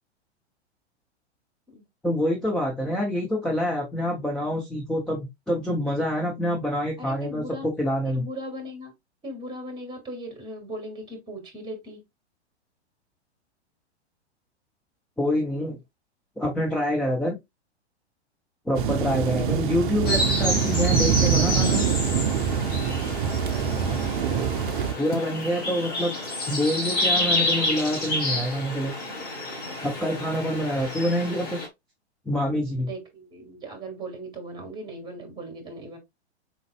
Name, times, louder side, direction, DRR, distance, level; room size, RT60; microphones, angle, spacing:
voice 1, 2.0-8.2 15.2-15.8 16.4-17.4 18.7-21.8 25.0-26.1 26.5-28.9 29.8-31.6 32.3-32.9, equal, ahead, 0.5 m, -26 dB
voice 2, 7.0-7.7 8.0-8.9 9.2-12.0 15.7-15.8 23.2-25.0 32.8-36.0, right 1 dB, 15° right, 1.5 m, -39 dB
sound 1, 18.7-24.9, right 7 dB, 50° right, 0.6 m, -25 dB
sound 2, 20.1-31.7, left 1 dB, 30° left, 2.0 m, -29 dB
4.4 x 3.9 x 2.4 m
figure-of-eight pair, 105°, 34 cm